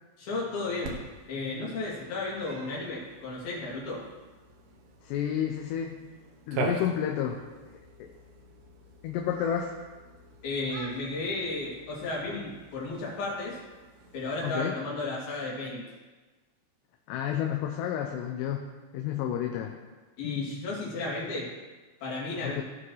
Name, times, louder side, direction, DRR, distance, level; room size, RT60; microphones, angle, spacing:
voice 1, 0.2-1.0 1.3-4.0 10.4-13.6 14.1-15.9 20.2-21.5 22.0-22.6, left 2 dB, 65° left, -5 dB, 4.1 m, -33 dB
Cat, 0.8-14.5, right 3 dB, 75° right, 2.8 m, -42 dB
voice 2, 5.0-6.0 6.5-7.4 8.0-8.1 9.0-9.8 14.4-14.7 17.1-18.7 18.9-19.8 20.2-20.5 22.4-22.6, left 9 dB, 85° left, 2 dB, 2.8 m, -30 dB
17.0 x 6.1 x 3.2 m, 1.3 s
omnidirectional pair, 4.9 m